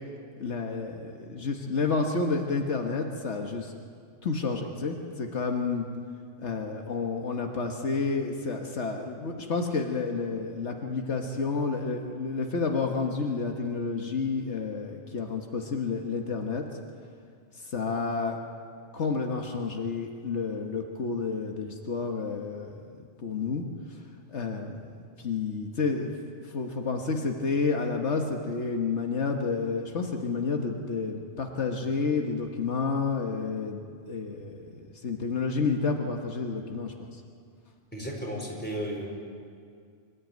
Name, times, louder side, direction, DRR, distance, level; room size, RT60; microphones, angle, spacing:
voice 1, 0.4-3.7 4.2-5.9 6.4-16.7 17.5-18.4 18.9-22.8 23.2-24.0 24.3-24.8 25.2-34.6 35.0-37.2, left 4 dB, 75° left, 3 dB, 1.7 m, -30 dB
voice 2, 37.9-39.1, equal, 10° left, -2 dB, 4.6 m, -34 dB
25.5 x 14.5 x 9.2 m, 2.2 s
omnidirectional pair, 1.2 m